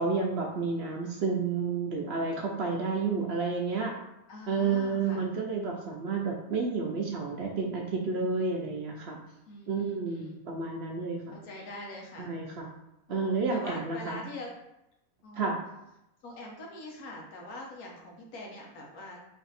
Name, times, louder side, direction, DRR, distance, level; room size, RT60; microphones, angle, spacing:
voice 1, 0.0-4.0 4.5-9.2 9.7-11.4 12.2-12.7 13.1-14.2 15.3-15.6, right 4 dB, 60° right, 0 dB, 0.7 m, -30 dB
voice 2, 4.3-5.3 9.5-10.4 11.3-12.3 13.1-14.5 15.2-15.6 16.2-19.2, left 2 dB, 85° left, -1 dB, 1.4 m, -43 dB
4.1 x 2.6 x 4.0 m, 0.87 s
omnidirectional pair, 1.5 m